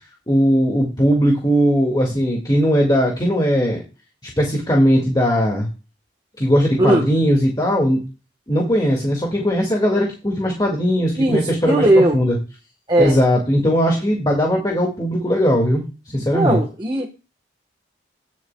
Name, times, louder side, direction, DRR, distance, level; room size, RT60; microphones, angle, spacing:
voice 1, 0.3-3.8 4.2-5.7 6.4-8.0 8.5-12.4 13.0-16.6, equal, 20° left, 2.0 m, -19 dB
voice 2, 11.2-12.2 12.9-13.2 16.3-17.1, right 1 dB, 25° right, 1.2 m, -17 dB
18.5 x 7.3 x 2.3 m
head